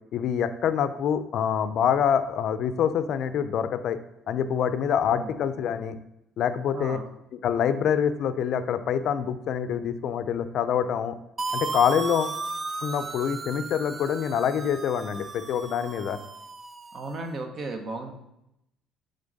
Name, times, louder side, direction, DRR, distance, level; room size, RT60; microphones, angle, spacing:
voice 1, 0.1-4.0 4.3-5.9 6.4-7.0 7.3-11.1 11.5-12.3 12.8-16.2, left 8 dB, 60° left, 11 dB, 0.4 m, -26 dB
voice 2, 6.7-7.0 16.9-18.1, right 2 dB, 50° right, 5 dB, 1.0 m, -34 dB
sound 1, 11.4-17.2, right 4 dB, 30° right, 0.4 m, -35 dB
7.0 x 3.9 x 4.0 m, 0.84 s
supercardioid pair, 80°, 0 cm